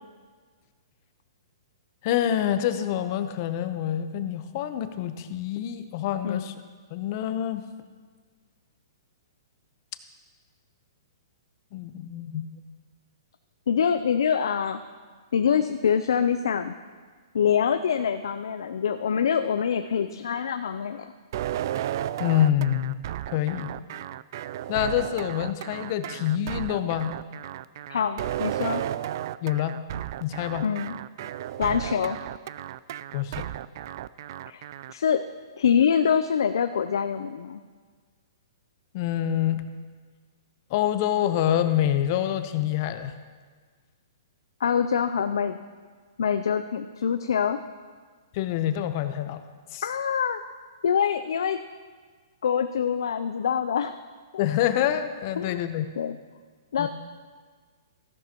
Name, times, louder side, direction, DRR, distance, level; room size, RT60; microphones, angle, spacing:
voice 1, 2.0-6.5 6.9-7.6 11.7-12.5 22.2-23.0 23.3-23.7 24.7-27.1 29.4-29.8 30.2-30.7 33.1-33.5 38.9-39.6 40.7-43.1 48.3-49.4 49.7-49.9 54.4-55.9 56.8-56.9, left 11 dB, 45° left, 10 dB, 0.8 m, -26 dB
voice 2, 13.7-14.8 15.3-16.7 17.3-21.1 27.9-28.8 30.6-31.0 31.6-32.2 34.5-35.2 35.6-37.6 44.6-45.6 46.2-47.6 49.8-50.4 50.8-51.6 52.4-54.0 55.4-55.6 56.0-56.2 56.7-56.9, left 7 dB, 75° left, 9 dB, 0.5 m, -25 dB
sound 1, 21.3-34.9, right 12 dB, 55° right, 0.3 m, -34 dB
15.0 x 11.0 x 3.0 m, 1.6 s
hypercardioid pair, 140°, 2 cm